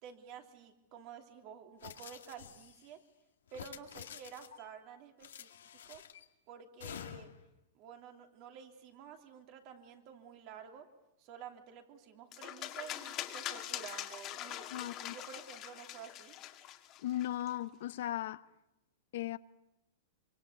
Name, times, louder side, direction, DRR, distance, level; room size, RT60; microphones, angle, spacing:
voice 1, 0.0-3.0 3.5-6.0 6.5-7.3 7.7-10.9 11.2-16.4, right 7 dB, 45° right, 3.1 m, -51 dB
sound 1, 1.8-2.9 3.5-4.7 5.2-6.3 6.8-7.5, left 9 dB, 90° left, 2.0 m, -49 dB
sound 2, 12.3-17.5, left 13 dB, 35° left, 1.9 m, -43 dB
voice 2, 14.7-15.1 17.0-18.4 19.1-19.4, left 13 dB, 65° left, 0.9 m, -37 dB
25.0 x 24.0 x 8.2 m
hypercardioid pair, 140°, 0 cm